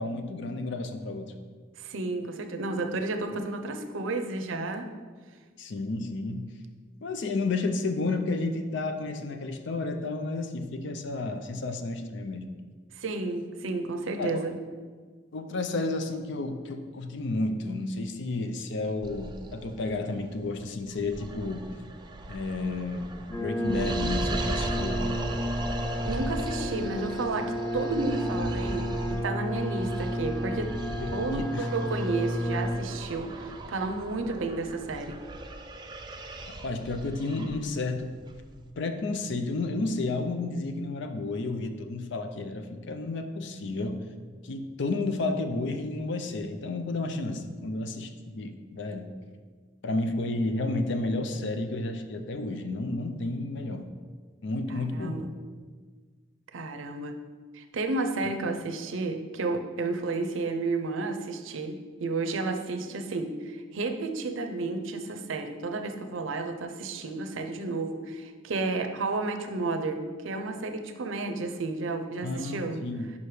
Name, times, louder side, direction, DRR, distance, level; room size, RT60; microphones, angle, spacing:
voice 1, 0.0-1.3 5.6-6.5 7.0-12.5 14.2-14.5 15.3-21.7 22.3-25.1 31.0-31.7 36.6-38.1 38.8-44.0 44.4-49.1 49.8-53.8 54.4-55.2 72.2-73.1, left 2 dB, 65° left, 7 dB, 0.5 m, -31 dB
voice 2, 1.8-4.9 13.0-14.6 26.0-30.7 31.1-35.2 54.7-55.3 56.5-57.2 57.5-72.8, right 3 dB, 75° right, 6 dB, 0.6 m, -32 dB
sound 1, 19.0-38.7, right 2 dB, 20° right, 0.4 m, -38 dB
sound 2, 23.3-32.7, equal, 15° left, 0.8 m, -32 dB
5.4 x 4.8 x 4.8 m, 1.5 s
head